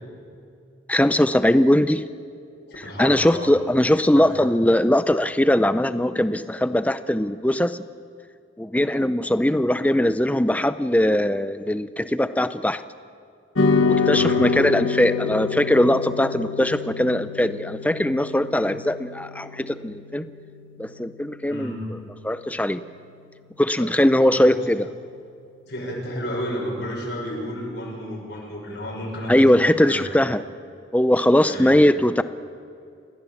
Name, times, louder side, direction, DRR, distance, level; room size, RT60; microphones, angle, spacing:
voice 1, 0.9-2.1 3.0-7.8 8.6-12.8 13.8-20.3 20.8-21.7 22.2-22.8 23.6-24.9 29.3-30.4 30.9-32.2, left 1 dB, 5° left, 12 dB, 0.6 m, -20 dB
voice 2, 2.7-3.6 4.1-4.3 14.1-14.5 21.5-21.8 23.8-23.9 24.3-24.6 25.7-30.1 31.4-31.8, equal, 60° left, -3 dB, 6.4 m, -32 dB
sound 1, 13.5-22.1, left 5 dB, 90° left, 1.5 m, -27 dB
30.0 x 16.0 x 7.2 m, 2.5 s
head